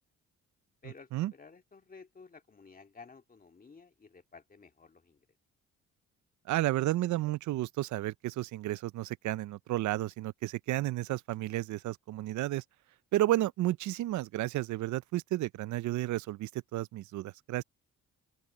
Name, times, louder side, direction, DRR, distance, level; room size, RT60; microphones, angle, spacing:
voice 1, 0.8-5.3, left 4 dB, 30° left, 2.2 m, -54 dB
voice 2, 6.5-12.6 13.1-17.6, right 15 dB, 70° right, 0.6 m, -32 dB
open air
cardioid pair, 90°, 30 cm